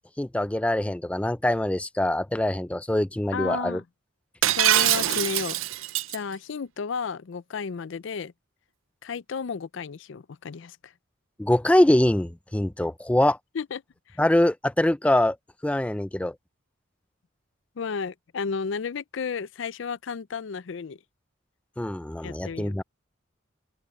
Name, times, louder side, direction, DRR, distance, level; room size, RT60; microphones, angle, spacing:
voice 1, 0.2-3.8 11.4-13.4 14.2-15.4 15.6-16.3 21.8-22.8, left 1 dB, 5° left, 0.3 m, -23 dB
voice 2, 3.3-3.8 4.5-5.8 6.1-8.3 9.0-10.9 13.5-13.8 14.1-14.2 17.8-21.0 22.2-22.8, left 5 dB, 70° left, 0.5 m, -33 dB
Shatter, 4.4-6.2, right 13 dB, 85° right, 0.6 m, -23 dB
open air
head